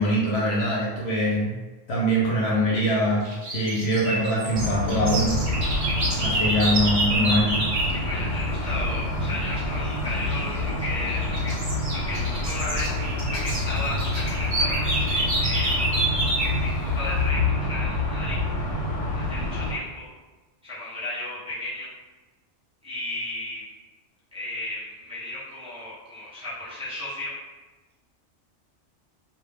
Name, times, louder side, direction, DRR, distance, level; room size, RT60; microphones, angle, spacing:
voice 1, 0.0-1.5 1.9-3.2 3.5-5.3 6.2-7.5, equal, 65° left, -5 dB, 0.8 m, -23 dB
sound 1, 3.2-8.0 10.2-10.6 11.0-16.6, right 2 dB, 45° right, 0.4 m, -28 dB
sound 2, 4.5-19.7, left 2 dB, 85° left, 1.0 m, -27 dB
voice 2, 7.9-11.6 11.9-16.1 16.6-18.7 19.2-20.1 20.6-21.9 22.8-23.7 24.3-27.4, left 2 dB, 5° right, -9 dB, 0.7 m, -34 dB
2.1 x 2.1 x 3.3 m, 1.2 s
omnidirectional pair, 1.3 m